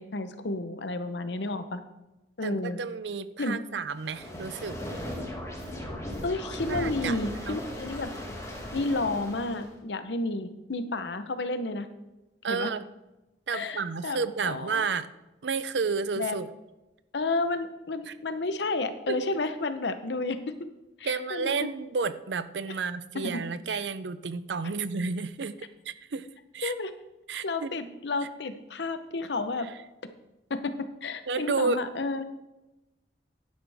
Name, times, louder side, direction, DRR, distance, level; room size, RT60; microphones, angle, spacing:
voice 1, 0.0-1.8 2.4-2.8 3.4-3.6 6.2-8.1 8.7-11.9 12.5-12.7 13.5-14.2 14.4-14.8 16.1-16.4 17.1-20.4 21.0-21.5 23.3-23.4 23.7-23.9 26.6-26.9 27.4-29.7 30.5-30.7 31.0-32.2, left 2 dB, 75° left, 10 dB, 0.8 m, -31 dB
voice 2, 2.4-4.8 6.6-7.2 7.5-7.6 12.4-12.8 13.5-15.1 15.4-16.5 18.1-18.2 19.1-19.2 21.0-26.3 26.5-26.7 27.3-27.7 31.3-31.8, right 5 dB, 80° right, 14 dB, 0.6 m, -31 dB
sound 1, 4.0-9.7, left 1 dB, 20° left, 2.1 m, -37 dB
11.5 x 10.5 x 3.5 m, 1.0 s
head